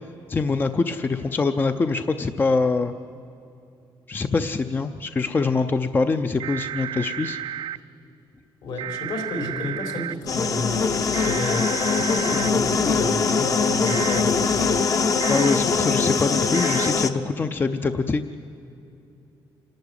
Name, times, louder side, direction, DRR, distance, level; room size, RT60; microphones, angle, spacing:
voice 1, 0.3-2.9 4.1-7.4 15.3-18.4, left 4 dB, 25° left, 9 dB, 0.5 m, -24 dB
sound 1, 6.4-7.8 8.8-10.1 11.1-12.5 13.9-14.2 15.2-15.6 16.5-16.9, right 11 dB, 70° right, 0.6 m, -32 dB
voice 2, 8.6-14.7, left 2 dB, 70° left, 3 dB, 4.2 m, -31 dB
sound 2, 10.3-17.1, left 5 dB, 40° left, 0.9 m, -22 dB
26.5 x 12.0 x 9.9 m, 2.7 s
cardioid pair, 140°, 9 cm